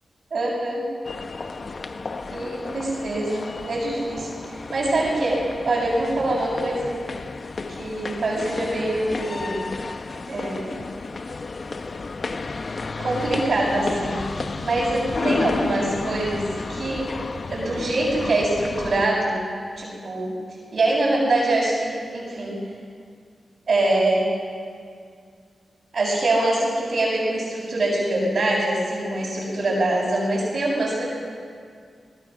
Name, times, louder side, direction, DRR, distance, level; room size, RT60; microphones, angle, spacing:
voice 1, 0.3-0.9 2.3-6.9 7.7-9.6 10.3-10.8 13.0-17.1 17.5-19.4 19.8-20.3 20.7-22.5 23.7-24.3 25.9-31.0, right 2 dB, 65° right, -8 dB, 6.7 m, -24 dB
sound 1, 1.0-19.1, left 3 dB, 50° left, 1.1 m, -32 dB
25.0 x 19.0 x 6.3 m, 2.2 s
cardioid pair, 60°, 0 cm